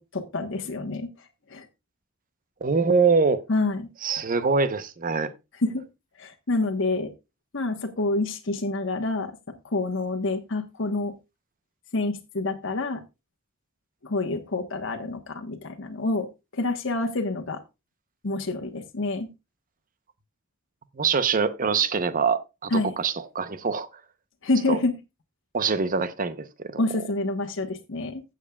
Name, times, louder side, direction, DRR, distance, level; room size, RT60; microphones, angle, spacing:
voice 1, 0.0-1.7 3.5-3.9 5.6-5.8 6.2-7.1 7.5-9.4 9.6-11.1 11.9-13.0 14.0-16.3 16.5-17.6 18.2-19.3 22.7-22.9 24.4-24.9 26.8-28.2, left 2 dB, 65° left, 1.2 m, -27 dB
voice 2, 2.6-3.4 4.0-5.3 20.9-23.9 24.7-24.8 25.5-26.8, right 5 dB, 40° right, 0.8 m, -24 dB
15.5 x 7.4 x 2.3 m
head